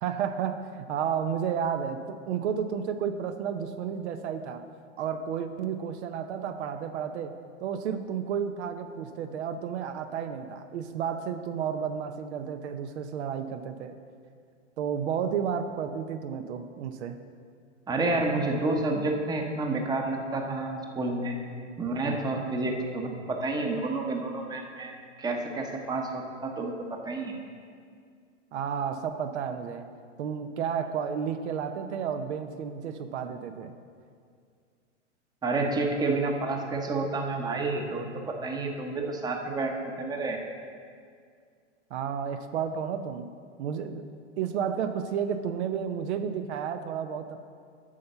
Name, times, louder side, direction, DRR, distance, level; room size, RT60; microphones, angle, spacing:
voice 1, 0.0-4.6 5.0-14.0 14.8-17.2 28.5-29.9 30.2-33.7 41.9-43.3 43.6-44.0 44.4-47.4, right 7 dB, 65° right, 8 dB, 0.7 m, -32 dB
voice 2, 17.9-21.4 21.8-26.7 27.0-27.3 35.4-38.0 38.4-39.7 40.0-40.4, right 2 dB, 10° right, 2 dB, 0.9 m, -29 dB
8.6 x 5.6 x 6.6 m, 2.2 s
hypercardioid pair, 120°, 36 cm